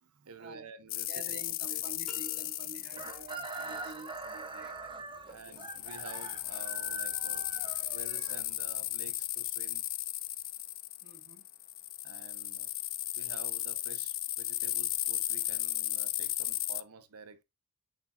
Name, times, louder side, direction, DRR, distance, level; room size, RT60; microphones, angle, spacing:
voice 1, 0.0-1.2 1.7-1.8 3.6-3.9 5.0-7.5 7.9-9.9 12.0-12.7 13.2-17.4, right 4 dB, 75° right, 0.8 m, -50 dB
sound 1, 0.9-4.3 5.4-16.8, left 16 dB, 40° left, 0.3 m, -35 dB
voice 2, 1.1-4.9 5.2-5.6 11.0-11.5, right 3 dB, 50° right, 0.9 m, -49 dB
sound 2, 2.1-3.2, left 3 dB, ahead, 2.5 m, -52 dB
Chicken rooster, 2.9-8.9, right 3 dB, 20° right, 0.8 m, -43 dB
6.4 x 6.0 x 2.6 m
head